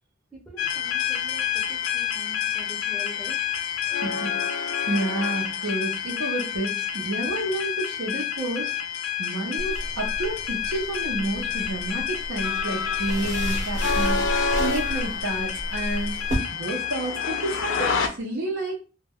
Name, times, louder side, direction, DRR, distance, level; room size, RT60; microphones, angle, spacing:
voice 1, 0.3-3.4, equal, ahead, -3 dB, 0.5 m, -44 dB
sound 1, 0.6-18.1, left 7 dB, 70° left, 0.4 m, -28 dB
voice 2, 4.0-8.7 9.2-14.2 14.6-16.2 16.5-18.8, right 2 dB, 80° right, -2 dB, 0.7 m, -30 dB
sound 2, 9.6-16.3, equal, 40° right, 0.7 m, -32 dB
2.2 x 2.1 x 3.4 m, 0.34 s
head